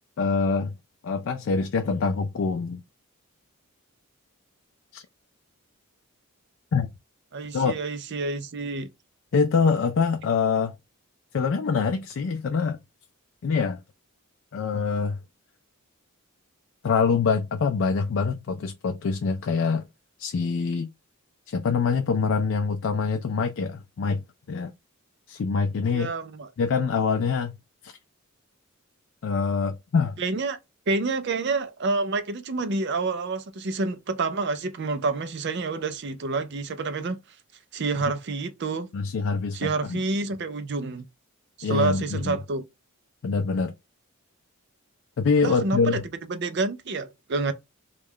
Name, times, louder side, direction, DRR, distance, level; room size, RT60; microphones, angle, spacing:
voice 1, 0.2-0.7 1.0-2.8 4.9-5.0 6.7-6.9 7.5-7.7 9.3-10.8 11.3-12.8 13.4-13.8 14.5-15.2 16.8-19.9 20.2-20.9 21.5-24.7 25.3-26.1 26.6-27.6 27.8-27.9 29.2-30.2 38.0-38.1 38.9-40.0 41.6-42.4 43.2-43.7 45.2-46.0, left 5 dB, 55° left, 0.3 m, -25 dB
voice 2, 7.3-8.9 25.9-26.5 30.2-30.6 30.9-37.2 37.7-38.9 39.5-41.1 41.6-42.6 45.4-46.0 46.3-47.5, right 3 dB, 50° right, 0.5 m, -28 dB
3.1 x 2.3 x 3.6 m
head